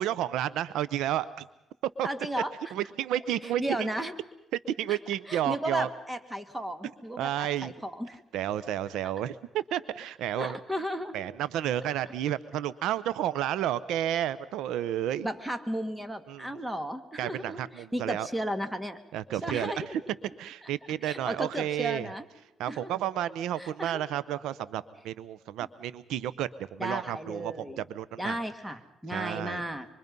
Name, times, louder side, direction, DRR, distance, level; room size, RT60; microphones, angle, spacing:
voice 1, 0.0-1.5 2.0-2.1 2.7-3.9 4.7-5.9 7.2-7.7 8.3-10.6 11.1-15.3 16.3-16.5 17.2-18.3 19.1-20.0 20.4-22.1 22.6-28.4 29.1-29.6, right 11 dB, 90° right, 16 dB, 0.8 m, -31 dB
voice 2, 2.0-2.5 3.6-4.1 4.9-5.0 5.3-8.2 9.0-9.1 10.4-11.2 15.2-17.6 17.9-19.0 19.4-20.1 21.0-22.3 22.7-22.9 23.6-24.0 26.8-27.8 28.2-29.9, right 1 dB, 10° right, 9 dB, 2.1 m, -34 dB
25.5 x 23.5 x 5.4 m, 0.90 s
cardioid pair, 90°, 0 cm